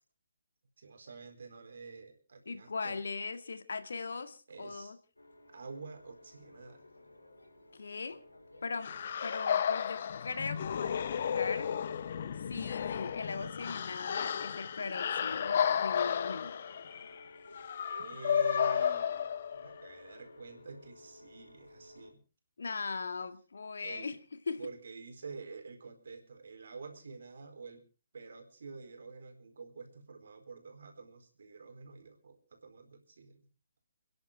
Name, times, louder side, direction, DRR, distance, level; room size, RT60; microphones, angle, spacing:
voice 1, 0.8-3.0 4.5-4.9 5.5-6.9 17.8-22.2 23.8-24.1 24.6-27.8 28.1-33.5, right 4 dB, 55° right, 4.3 m, -48 dB
voice 2, 2.5-5.0 7.7-8.2 8.6-8.9 9.2-11.7 12.5-16.6 22.6-24.2 24.5-24.6, left 4 dB, 60° left, 1.8 m, -39 dB
sound 1, 5.2-22.1, left 2 dB, 80° left, 5.3 m, -56 dB
sound 2, 8.8-19.9, left 8 dB, 45° left, 0.9 m, -33 dB
29.5 x 11.0 x 3.4 m
figure-of-eight pair, 135°, 0 cm